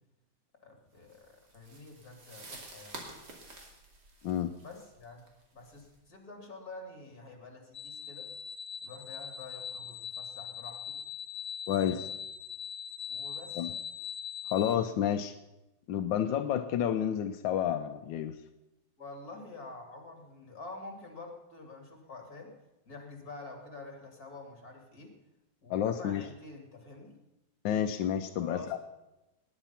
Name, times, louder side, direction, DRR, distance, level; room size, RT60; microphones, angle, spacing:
voice 1, 0.6-3.0 4.6-5.2 5.5-8.3 8.8-11.0 11.8-12.1 13.1-13.7 19.0-22.5 22.9-25.1 25.6-27.1 28.4-28.8, left 3 dB, 55° left, 3 dB, 3.3 m, -47 dB
sound 1, 1.1-6.0, right 2 dB, 65° right, 3.1 m, -50 dB
sound 2, 7.7-14.8, left 8 dB, 30° left, 1.1 m, -41 dB
voice 2, 11.7-12.0 13.6-13.7 14.5-15.3 15.9-18.4 25.7-26.3 27.6-28.8, left 9 dB, 90° left, 8 dB, 1.4 m, -30 dB
19.0 x 10.0 x 5.8 m, 0.98 s
omnidirectional pair, 2.0 m